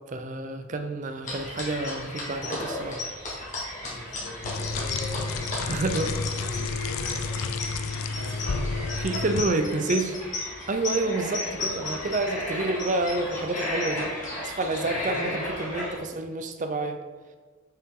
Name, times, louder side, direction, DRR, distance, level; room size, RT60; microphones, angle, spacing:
voice 1, 0.1-3.0 5.7-6.1 9.0-10.2 10.7-14.1 14.4-17.0, right 2 dB, 40° right, 7 dB, 0.5 m, -28 dB
sound 1, 1.2-16.0, left 1 dB, 35° left, 1.9 m, -34 dB
voice 2, 3.8-7.6 8.1-9.7 14.8-15.4, left 1 dB, 65° left, -2 dB, 1.7 m, -41 dB
sound 2, 4.4-9.4, left 4 dB, 90° left, 0.5 m, -31 dB
6.9 x 5.7 x 3.7 m, 1.4 s
head